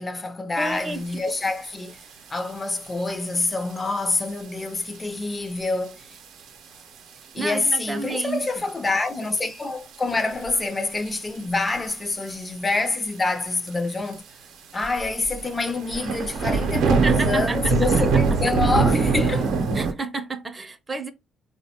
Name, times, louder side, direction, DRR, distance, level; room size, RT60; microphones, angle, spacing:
voice 1, 0.0-2.0 2.3-6.0 7.3-14.2 14.7-19.5, left 3 dB, 25° left, 0.4 m, -26 dB
voice 2, 0.6-1.3 7.4-8.5 17.0-17.7 19.7-21.1, right 3 dB, 25° right, 0.4 m, -30 dB
sound 1, 1.3-1.4 1.6-2.0 2.7-2.9 3.5-3.6 4.2-4.3 4.6-4.7 4.9-5.0 6.1-6.4 6.8-6.9 7.8-7.9 8.5-8.9 9.3-9.4 9.9-10.6 11.7-12.0 12.3-12.4 12.6-12.7 12.9-13.0 13.7-13.8 14.1-14.2 14.8-19.9, right 4 dB, 85° right, 0.6 m, -22 dB
3.3 x 2.1 x 2.8 m
cardioid pair, 90°, 0 cm